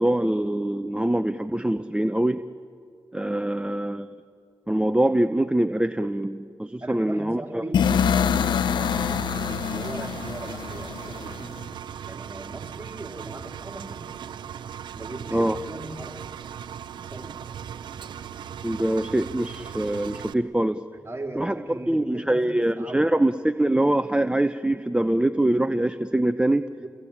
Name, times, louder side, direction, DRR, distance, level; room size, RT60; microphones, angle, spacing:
voice 1, 0.0-2.4 3.1-4.1 4.7-7.6 15.3-15.6 18.6-20.8 21.4-21.5 21.9-26.7, right 1 dB, 15° right, 10 dB, 0.8 m, -24 dB
voice 2, 6.8-11.6 12.0-14.0 14.9-16.2 17.0-17.3 21.0-23.1 26.8-26.9, right 2 dB, 30° right, 3 dB, 3.8 m, -39 dB
sound 1, 7.7-11.7, left 7 dB, 80° left, 0.9 m, -25 dB
Engine, 8.8-20.3, right 8 dB, 85° right, 0.7 m, -38 dB
29.5 x 20.5 x 8.8 m, 2.3 s
supercardioid pair, 45°, 8 cm